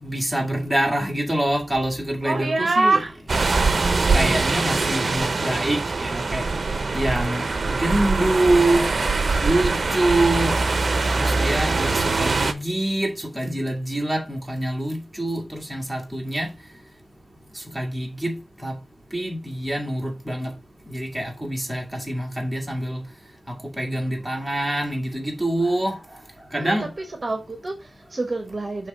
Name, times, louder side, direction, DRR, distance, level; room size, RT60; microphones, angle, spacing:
voice 1, 0.0-3.0 4.1-6.5 6.9-8.8 9.4-10.6 11.1-16.5 17.6-18.3 18.6-18.7 19.1-20.5 20.9-23.0 23.5-26.0 26.5-26.9, right 1 dB, 5° right, 2.0 m, -25 dB
voice 2, 2.2-3.2 26.5-26.7 27.2-28.9, right 3 dB, 40° right, 1.0 m, -25 dB
sound 1, 3.3-12.5, right 3 dB, 55° right, 0.7 m, -23 dB
6.4 x 3.3 x 5.2 m
wide cardioid pair, 110°, 0 cm